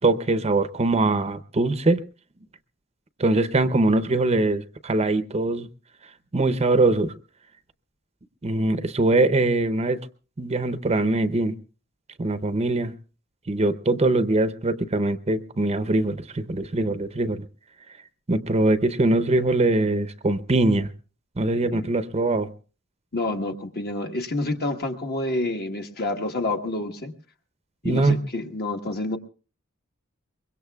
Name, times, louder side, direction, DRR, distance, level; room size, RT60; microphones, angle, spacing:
voice 1, 0.0-2.0 3.2-5.7 6.3-7.1 8.4-10.0 10.4-11.5 12.2-12.9 13.5-17.5 18.3-20.9 21.4-22.5 27.8-28.2, right 2 dB, 30° right, 12 dB, 0.7 m, -22 dB
voice 2, 23.1-27.1 27.8-29.2, left 2 dB, 45° left, 5 dB, 1.3 m, -28 dB
23.5 x 22.0 x 2.3 m, 0.37 s
head